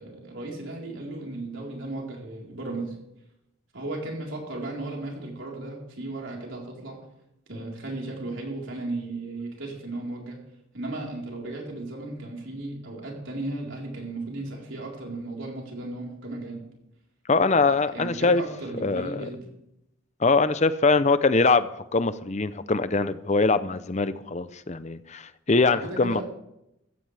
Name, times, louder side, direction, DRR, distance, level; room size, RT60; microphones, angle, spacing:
voice 1, 0.0-3.0 3.7-7.0 7.5-10.4 10.7-16.6 17.9-19.5 25.6-26.2, right 2 dB, 65° right, 4.1 m, -35 dB
voice 2, 17.3-18.4 18.8-19.3 20.2-26.2, left 3 dB, 35° left, 0.6 m, -23 dB
15.5 x 14.5 x 3.4 m
head